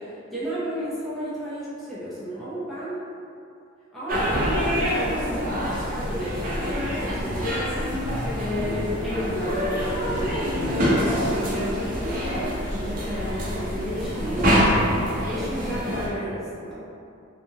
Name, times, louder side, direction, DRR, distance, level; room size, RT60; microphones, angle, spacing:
voice 1, 0.0-3.0 3.9-16.9, equal, ahead, -12 dB, 0.5 m, -33 dB
sound 1, 4.1-16.1, equal, 45° right, 0.6 m, -25 dB
2.7 x 2.5 x 2.7 m, 2.6 s
head